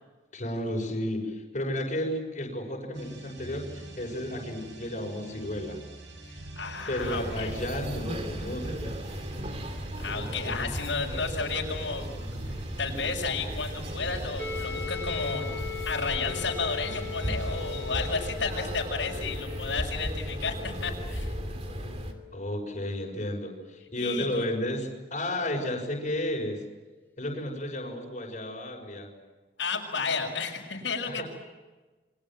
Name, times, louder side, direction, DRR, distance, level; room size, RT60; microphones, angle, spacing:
voice 1, 0.3-5.8 6.9-8.9 10.5-10.7 22.3-26.6 27.2-29.1 31.1-31.2, left 1 dB, 40° left, 0 dB, 6.4 m, -32 dB
sound 1, 2.9-18.4, right 1 dB, 80° right, 5.2 m, -46 dB
voice 2, 6.2-7.6 10.0-12.1 12.4-15.5 15.9-21.3 24.0-24.5 29.6-31.2, left 4 dB, 75° left, 0 dB, 5.9 m, -32 dB
sound 2, 7.0-22.1, equal, 35° right, 2.8 m, -36 dB
sound 3, 14.4-26.1, left 10 dB, 10° left, 2.4 m, -42 dB
30.0 x 24.0 x 7.7 m, 1.2 s
head